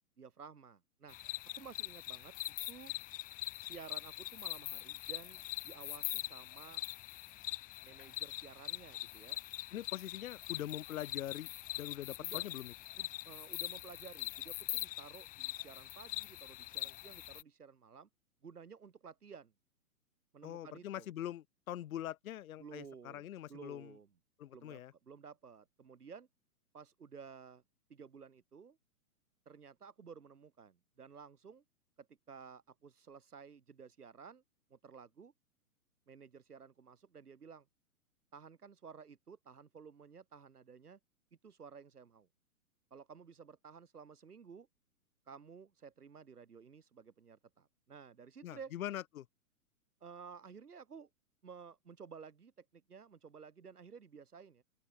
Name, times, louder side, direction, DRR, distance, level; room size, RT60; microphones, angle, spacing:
voice 1, 0.2-1.2 1.5-2.3 2.7-2.9 3.6-6.8 7.8-9.4 12.2-12.5 13.0-18.1 18.4-19.5 20.3-21.1 22.6-23.2 23.5-24.1 24.5-24.8 25.1-26.3 26.7-27.6 27.9-28.8 29.5-31.6 32.0-34.4 34.7-35.3 36.1-37.7 38.3-41.0 41.4-42.3 42.9-44.7 45.3-48.7 50.0-51.1 51.4-54.6, right 6 dB, 85° right, 2.4 m, -54 dB
sound 1, 1.1-17.4, left 17 dB, 20° left, 0.9 m, -43 dB
voice 2, 9.7-11.5 11.8-12.7 20.4-24.0 24.4-24.9 48.4-49.3, left 12 dB, 65° left, 0.8 m, -43 dB
open air
hypercardioid pair, 125°, 44 cm